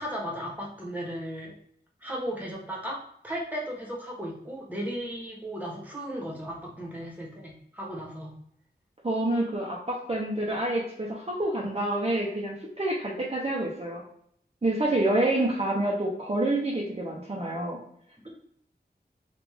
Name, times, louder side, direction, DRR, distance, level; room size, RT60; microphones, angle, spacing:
voice 1, 0.0-1.5 2.0-8.3, equal, 10° right, -3 dB, 1.1 m, -35 dB
voice 2, 9.0-14.0 14.6-17.8, right 1 dB, 35° right, -3 dB, 0.7 m, -28 dB
3.3 x 2.4 x 3.5 m, 0.67 s
wide cardioid pair, 60°, 17 cm